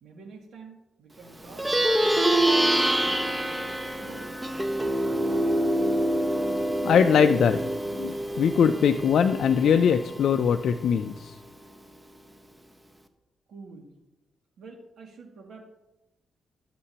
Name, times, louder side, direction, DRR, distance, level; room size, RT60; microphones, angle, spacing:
voice 1, 0.0-4.6 13.5-13.9 14.6-15.6, right 4 dB, 75° right, 0 dB, 2.0 m, -47 dB
Plucked string instrument, 1.5-11.2, right 1 dB, 10° right, 0.8 m, -26 dB
voice 2, 6.8-7.6 8.0-11.4, left 7 dB, 70° left, 8 dB, 0.4 m, -21 dB
12.0 x 7.5 x 2.9 m, 0.96 s
cardioid pair, 90°, 0 cm